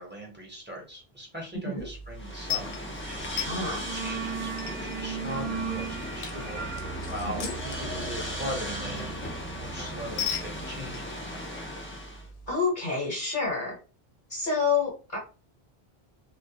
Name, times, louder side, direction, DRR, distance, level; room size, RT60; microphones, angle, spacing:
voice 1, 0.0-3.3 3.6-6.7 7.0-11.6, equal, 10° right, -2 dB, 0.7 m, -40 dB
sound 1, 1.8-12.5, left 5 dB, 80° left, 0.8 m, -39 dB
sound 2, 2.1-12.3, left 1 dB, 20° left, 0.4 m, -37 dB
sound 3, 3.0-3.3 3.6-10.2, right 7 dB, 50° right, 0.7 m, -38 dB
voice 2, 3.4-3.8 7.4-7.5 12.5-13.8 14.3-15.2, left 4 dB, 50° left, -3 dB, 1.0 m, -28 dB
2.2 x 2.1 x 2.7 m, 0.33 s
omnidirectional pair, 1.1 m